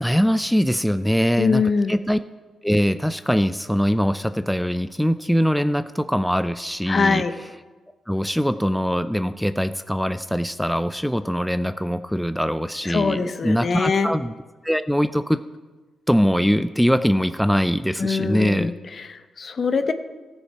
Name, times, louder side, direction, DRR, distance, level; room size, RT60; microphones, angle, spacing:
voice 1, 0.0-2.2 2.6-7.2 8.1-14.3 14.6-15.4 16.1-18.7, equal, ahead, 11 dB, 0.4 m, -22 dB
voice 2, 1.4-2.0 6.9-7.3 12.8-14.1 18.0-18.7 19.1-19.9, left 5 dB, 50° left, 10 dB, 0.8 m, -22 dB
14.5 x 6.5 x 4.6 m, 1.3 s
supercardioid pair, 60°, 0 cm